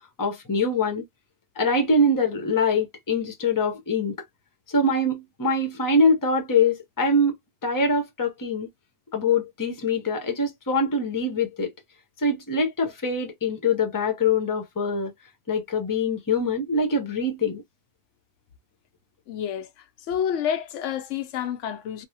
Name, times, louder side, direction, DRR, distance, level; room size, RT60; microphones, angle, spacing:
voice 1, 0.2-1.0 1.6-4.2 4.7-7.3 7.6-8.7 9.1-11.7 12.2-15.1 15.5-17.6, left 2 dB, 20° left, 0.6 m, -23 dB
voice 2, 19.3-19.7 20.1-22.1, left 9 dB, 85° left, 0.9 m, -28 dB
3.3 x 2.1 x 2.6 m
omnidirectional pair, 1.2 m